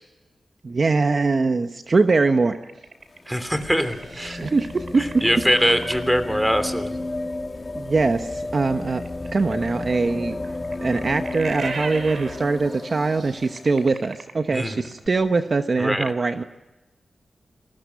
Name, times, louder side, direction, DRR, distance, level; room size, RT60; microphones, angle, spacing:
voice 1, 0.6-2.5 4.2-5.2 7.7-9.0 9.3-10.4 10.8-16.4, right 3 dB, 45° right, 7 dB, 1.0 m, -22 dB
sound 1, 2.1-6.2 9.0-15.1, right 4 dB, 65° right, 3.0 m, -38 dB
sound 2, 2.9-13.9 15.1-15.2, left 2 dB, 30° left, 1.6 m, -33 dB
voice 2, 3.3-4.4 5.0-7.0 14.5-14.8 15.8-16.1, equal, 5° right, 10 dB, 3.0 m, -23 dB
29.0 x 20.0 x 9.5 m, 1.1 s
wide cardioid pair, 110°, 0 cm